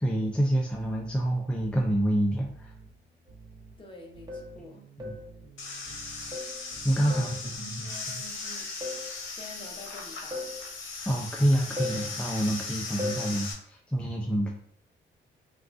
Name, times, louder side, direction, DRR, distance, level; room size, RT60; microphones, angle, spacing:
voice 1, 0.0-2.7 5.0-5.2 6.8-7.9 8.1-8.2 11.1-14.5, right 1 dB, 5° left, 0 dB, 0.4 m, -27 dB
sound 1, 0.7-7.6, right 4 dB, 80° right, 0.7 m, -52 dB
sound 2, 3.3-3.4 4.3-4.6 5.0-5.3 6.3-6.6 7.1-7.4 8.8-9.1 10.3-10.6 11.8-12.1 13.0-13.3, left 2 dB, 20° right, 1.0 m, -36 dB
voice 2, 3.8-4.8 7.0-8.7 9.3-10.5, left 2 dB, 25° left, 1 dB, 0.8 m, -46 dB
sound 3, 5.6-13.5, left 4 dB, 80° left, 0.8 m, -38 dB
3.5 x 2.4 x 2.5 m, 0.63 s
cardioid pair, 90°, 20 cm